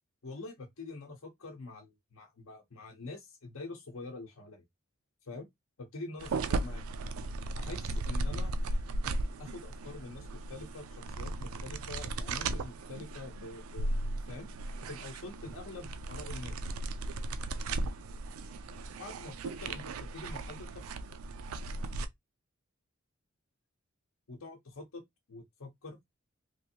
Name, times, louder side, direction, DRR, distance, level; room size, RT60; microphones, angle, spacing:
voice 1, 0.2-4.6 5.2-5.5 5.8-6.8 7.5-8.5 9.4-13.9 14.3-14.5 14.9-16.7 19.0-20.9 24.3-25.0 25.3-26.0, left 3 dB, 70° left, 0.7 m, -45 dB
sound 1, 6.2-22.1, right 2 dB, 85° right, 0.4 m, -36 dB
3.1 x 2.6 x 2.7 m
head